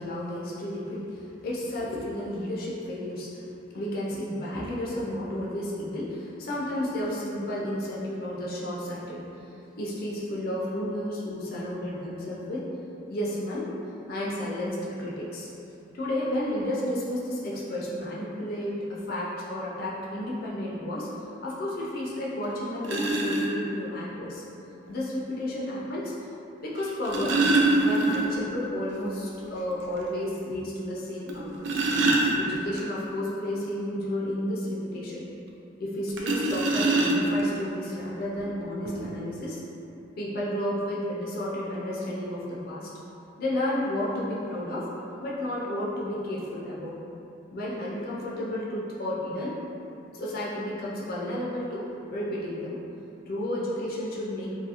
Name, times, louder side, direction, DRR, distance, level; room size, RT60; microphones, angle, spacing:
voice 1, 0.0-9.2 9.8-12.7 13.1-13.7 14.1-15.5 15.9-21.1 21.4-24.4 24.9-26.3 26.6-27.4 27.8-31.8 32.4-35.3 35.8-39.6 40.2-42.9 43.4-44.9 45.2-47.0 47.5-49.6 50.1-51.8 52.1-52.8 53.3-54.5, left 1 dB, 50° left, -6 dB, 0.4 m, -32 dB
sound 1, 22.2-22.3 22.8-23.5 24.9-25.0 26.8-28.5 28.8-28.9 29.4-29.5 30.0-30.1 31.3-32.8 36.2-37.5 38.4-38.5 38.8-39.1, right 2 dB, 70° right, 0.3 m, -24 dB
2.6 x 2.4 x 2.7 m, 2.9 s
head